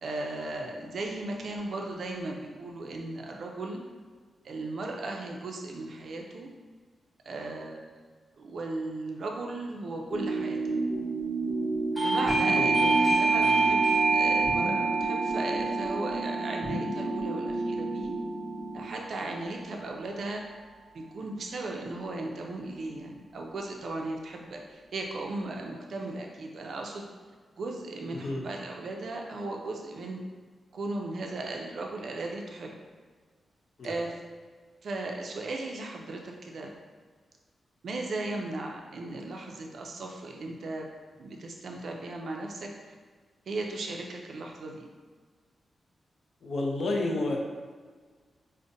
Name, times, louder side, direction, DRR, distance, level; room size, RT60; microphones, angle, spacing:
voice 1, 0.0-3.8 4.4-6.5 7.3-7.8 8.4-10.6 12.0-18.1 18.7-20.6 20.9-27.0 27.6-30.2 30.7-32.7 33.8-34.2 34.8-36.7 37.8-40.9 41.2-42.7 43.5-44.9, right 2 dB, 60° right, 1 dB, 0.4 m, -36 dB
sound 1, 10.1-18.8, right 2 dB, 85° left, 0.9 m, -31 dB
Doorbell, 12.0-18.4, right 3 dB, ahead, 0.8 m, -27 dB
voice 2, 12.5-13.0 13.4-13.7 28.1-28.4 33.8-34.0 46.4-47.4, left 2 dB, 60° left, 0 dB, 0.5 m, -31 dB
4.9 x 2.1 x 2.6 m, 1.5 s
wide cardioid pair, 130°, 0 cm